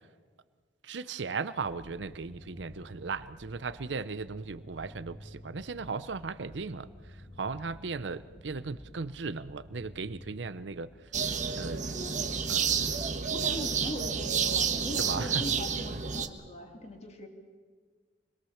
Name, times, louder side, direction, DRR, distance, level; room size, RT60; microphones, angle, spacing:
voice 1, 0.8-11.1 11.5-11.9 12.5-12.8 15.0-15.4, right 4 dB, 85° right, 14 dB, 0.7 m, -37 dB
sound 1, 1.6-11.5, equal, 85° left, 7.4 m, -51 dB
sound 2, 11.1-16.3, right 6 dB, 45° right, 1.4 m, -30 dB
voice 2, 11.8-12.1 13.3-17.3, left 1 dB, 40° left, 3 dB, 3.1 m, -40 dB
26.0 x 21.5 x 7.2 m, 1.5 s
head